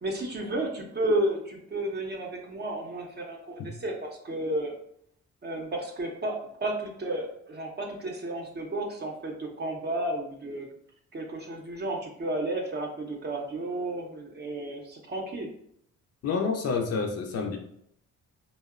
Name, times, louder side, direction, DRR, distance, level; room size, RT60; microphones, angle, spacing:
voice 1, 0.0-4.7 5.4-10.7 11.1-15.5, right 1 dB, 35° right, 1 dB, 0.6 m, -32 dB
voice 2, 16.2-17.6, left 5 dB, 55° left, 3 dB, 0.5 m, -28 dB
2.7 x 2.0 x 2.4 m, 0.70 s
cardioid pair, 90°, 30 cm